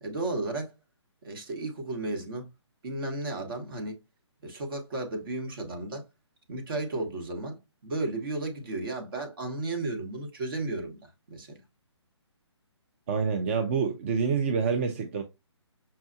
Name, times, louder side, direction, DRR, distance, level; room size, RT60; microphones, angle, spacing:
voice 1, 0.0-0.7 1.2-2.5 2.8-4.0 4.4-6.0 6.5-11.6, right 2 dB, 50° right, 1.2 m, -34 dB
voice 2, 13.1-15.2, right 5 dB, 25° right, 0.4 m, -27 dB
5.5 x 2.2 x 2.6 m
figure-of-eight pair, 145°, 15 cm